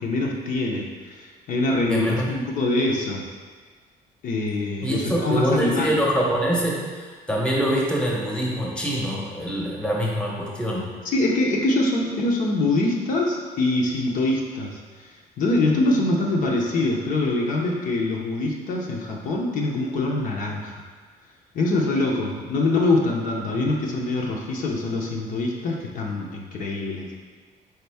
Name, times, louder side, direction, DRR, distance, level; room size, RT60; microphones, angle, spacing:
voice 1, 0.0-3.3 4.2-5.9 11.1-15.1 15.4-20.8 21.5-27.3, left 2 dB, 55° left, -2 dB, 0.6 m, -24 dB
voice 2, 1.9-2.3 4.8-10.9 23.5-23.7, equal, 5° left, -3 dB, 0.9 m, -24 dB
4.3 x 3.5 x 3.4 m, 1.5 s
cardioid pair, 110°, 17 cm